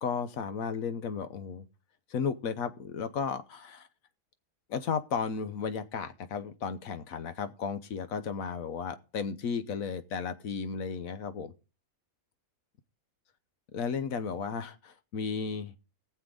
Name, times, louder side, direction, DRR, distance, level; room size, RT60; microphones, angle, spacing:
voice 1, 0.0-1.6 2.1-3.9 4.7-11.5 13.7-15.7, left 6 dB, 75° left, 1.3 m, -34 dB
18.5 x 7.3 x 3.8 m
omnidirectional pair, 1.5 m